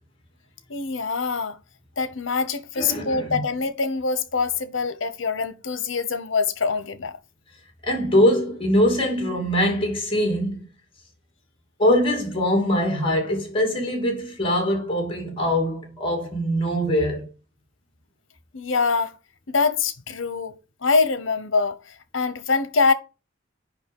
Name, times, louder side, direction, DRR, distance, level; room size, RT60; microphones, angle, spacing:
voice 1, 0.7-1.6 2.0-7.1 18.5-19.2 19.5-22.9, left 4 dB, 75° left, 1.0 m, -24 dB
voice 2, 2.8-3.4 7.8-10.6 11.8-17.3, equal, 30° left, 2.9 m, -22 dB
6.9 x 5.6 x 5.5 m
head